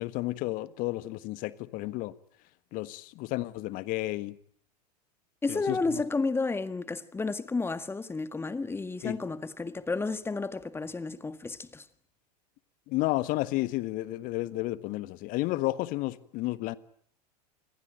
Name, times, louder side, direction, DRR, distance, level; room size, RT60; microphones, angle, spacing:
voice 1, 0.0-2.1 2.7-4.4 5.5-6.0 9.0-9.2 12.9-16.8, left 18 dB, 40° left, 1.5 m, -32 dB
voice 2, 5.4-11.8, left 3 dB, 10° left, 1.8 m, -32 dB
28.5 x 21.5 x 9.3 m
figure-of-eight pair, 90°, 21 cm